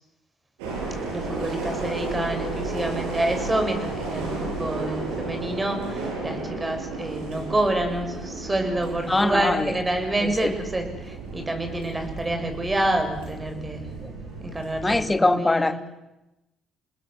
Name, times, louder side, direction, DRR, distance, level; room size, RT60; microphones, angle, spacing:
sound 1, 0.6-15.1, right 3 dB, 90° right, 7.1 m, -33 dB
voice 1, 1.1-14.0 14.4-15.8, right 1 dB, 20° right, 5 dB, 7.1 m, -28 dB
voice 2, 9.1-9.8 10.2-10.5 14.0-14.1 14.8-15.8, left 2 dB, 20° left, 10 dB, 2.1 m, -22 dB
28.5 x 20.0 x 8.2 m, 0.96 s
hypercardioid pair, 60°, 0 cm